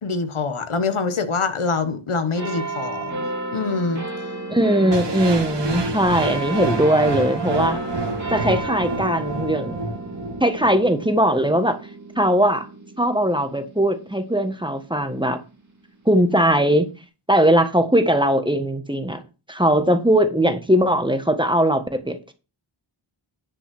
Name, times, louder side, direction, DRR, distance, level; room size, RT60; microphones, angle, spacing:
voice 1, 0.0-4.0 5.7-5.8, left 4 dB, 80° left, 1.4 m, -25 dB
sound 1, 2.3-15.2 15.9-16.0, right 2 dB, 35° right, 2.5 m, -32 dB
voice 2, 4.5-7.8 8.3-9.8 10.4-11.8 12.2-12.7 13.0-15.4 16.0-16.9 17.3-19.2 19.5-22.3, equal, 10° right, 1.5 m, -20 dB
sound 2, 4.9-10.9, right 2 dB, 55° right, 1.7 m, -28 dB
10.5 x 5.5 x 6.1 m
wide cardioid pair, 65°, 49 cm